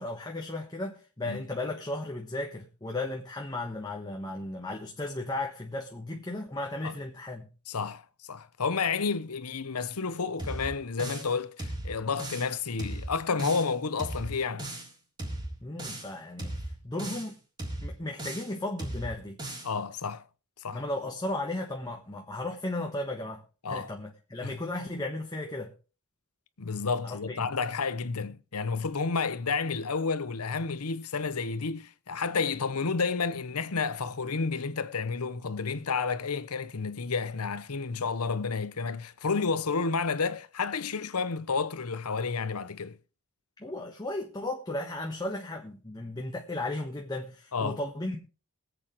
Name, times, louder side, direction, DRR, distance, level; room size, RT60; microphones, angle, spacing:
voice 1, 0.0-7.5 15.6-17.3 17.8-19.4 20.7-25.7 27.0-27.4 43.6-48.2, left 2 dB, 20° left, 1.2 m, -35 dB
voice 2, 7.7-8.0 8.3-14.7 19.6-20.2 20.6-20.8 23.6-23.9 24.4-24.6 26.6-43.0 47.5-47.8, left 5 dB, 90° left, 0.9 m, -31 dB
sound 1, 10.4-11.3 11.6-12.5 12.8-13.7 14.0-14.9 15.2-16.1 16.4-17.3 17.6-18.5 18.8-19.7, right 1 dB, 20° right, 3.5 m, -37 dB
22.5 x 8.2 x 3.1 m
head